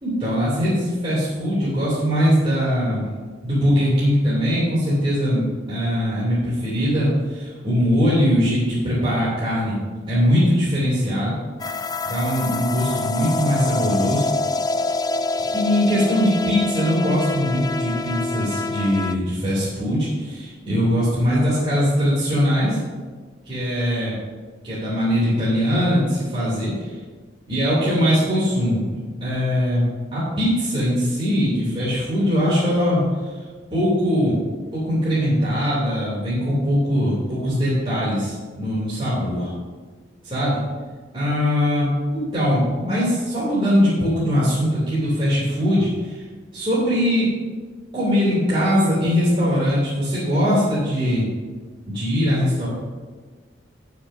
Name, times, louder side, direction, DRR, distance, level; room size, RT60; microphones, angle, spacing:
voice 1, 0.0-3.0 3.4-9.8 10.1-11.3 12.0-14.2 15.5-22.8 23.5-24.2 24.6-26.7 27.5-29.8 30.1-33.0 33.7-34.4 34.7-39.5 40.2-40.6 41.1-46.2 46.5-47.3 47.9-51.3 51.9-52.7, equal, 30° right, -10 dB, 3.3 m, -21 dB
sound 1, 11.6-19.1, left 3 dB, 20° left, 0.3 m, -26 dB
19.5 x 6.9 x 2.8 m, 1.5 s
head